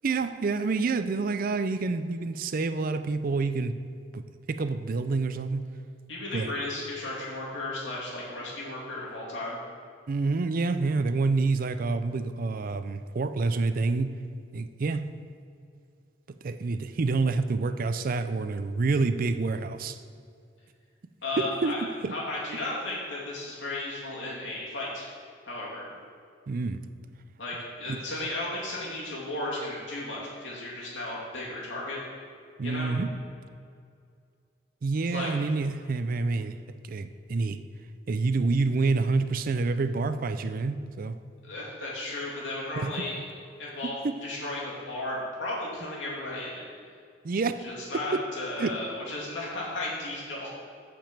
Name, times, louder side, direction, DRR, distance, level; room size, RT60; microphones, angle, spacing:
voice 1, 0.0-3.8 4.1-4.2 4.5-5.7 6.3-6.5 10.1-14.2 14.5-15.1 16.4-20.0 21.4-21.8 22.0-22.2 26.5-26.8 27.9-28.0 32.6-33.2 34.8-36.6 36.8-37.6 38.1-41.2 42.8-43.3 43.8-44.2 47.2-47.6 48.1-48.2 48.6-48.8, right 3 dB, 50° right, 11 dB, 0.4 m, -28 dB
voice 2, 6.1-9.6 21.2-21.8 22.1-25.1 25.5-25.9 27.4-32.0 32.6-32.9 35.1-35.3 41.4-43.2 43.6-46.7 47.6-50.6, left 2 dB, 85° left, -5 dB, 2.5 m, -34 dB
8.8 x 5.2 x 7.3 m, 2.3 s
head